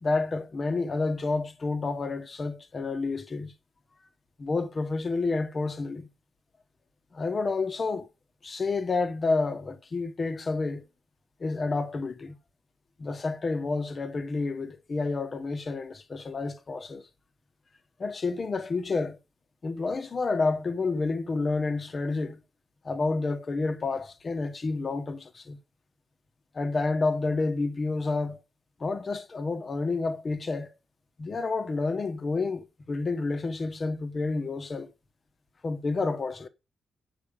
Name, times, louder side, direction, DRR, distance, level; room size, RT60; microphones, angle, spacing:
voice 1, 0.0-3.5 4.4-6.1 7.1-8.1 8.4-10.8 11.4-12.4 13.0-17.0 18.0-19.2 19.6-22.4 22.8-25.6 26.5-28.4 28.8-30.7 31.2-34.9 35.6-36.5, left 3 dB, 30° left, 1.0 m, -29 dB
8.6 x 5.9 x 5.2 m
wide cardioid pair, 170°, 0 cm